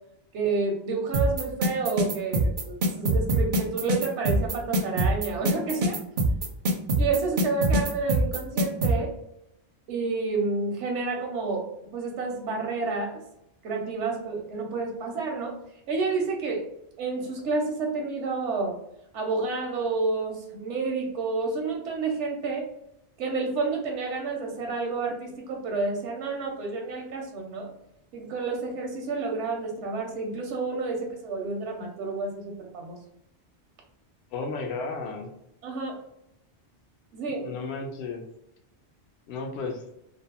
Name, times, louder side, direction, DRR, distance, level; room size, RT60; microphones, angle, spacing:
voice 1, 0.3-6.0 7.0-9.1 9.9-11.7 11.9-13.2 13.6-15.6 15.9-16.7 17.0-18.8 19.1-22.7 23.2-27.7 28.1-33.0 35.6-36.0 37.1-37.5, right 4 dB, 85° right, 1 dB, 0.9 m, -29 dB
sound 1, 1.1-8.9, right 1 dB, 60° right, 0.5 m, -23 dB
voice 2, 34.3-35.3 37.4-38.2 39.3-39.8, left 4 dB, 70° left, 4 dB, 0.8 m, -33 dB
2.5 x 2.0 x 2.8 m, 0.81 s
omnidirectional pair, 1.2 m